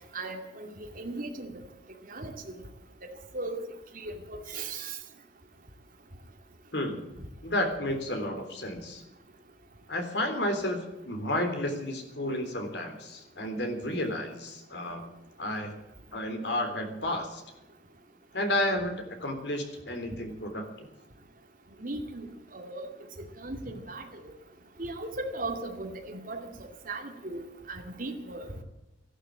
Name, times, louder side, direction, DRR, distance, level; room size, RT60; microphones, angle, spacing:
voice 1, 0.1-0.7 1.0-1.5 2.1-2.6 3.0-3.6 3.9-5.0 21.8-22.2 22.5-22.9 23.4-24.3 24.8-26.5 26.9-28.5, right 2 dB, 50° right, 3 dB, 2.4 m, -37 dB
voice 2, 7.4-9.0 9.9-15.1 15.4-15.7 16.1-17.4 18.3-20.9, left 1 dB, 65° left, 5 dB, 3.6 m, -31 dB
14.0 x 11.5 x 8.4 m, 0.95 s
head